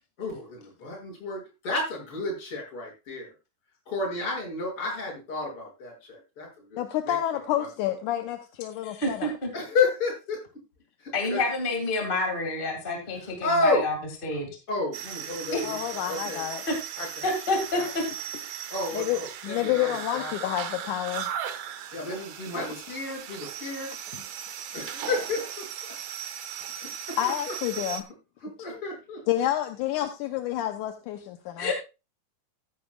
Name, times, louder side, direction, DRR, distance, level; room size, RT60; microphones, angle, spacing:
voice 1, 0.2-3.3 3.9-7.2 7.6-7.7 9.5-10.4 11.0-11.4 13.2-13.9 14.7-15.8 16.1-16.5 17.0-17.3 17.7-17.9 18.7-20.3 21.9-23.9 24.7-26.0 26.8-27.8 28.4-29.5, left 3 dB, 40° left, -2 dB, 6.9 m, -31 dB
voice 2, 6.8-9.3 15.6-16.6 18.9-21.3 24.1-24.2 27.2-28.0 29.3-31.7, left 12 dB, 80° left, 6 dB, 2.2 m, -29 dB
voice 3, 8.8-9.5 11.1-13.9 14.2-14.5 15.5-15.6 16.7-16.8 17.2-18.0 31.6-31.7, left 2 dB, 20° left, 2 dB, 1.7 m, -28 dB
sound 1, 14.9-28.0, right 9 dB, 65° right, 2.1 m, -37 dB
15.0 x 10.5 x 2.3 m, 0.29 s
omnidirectional pair, 3.7 m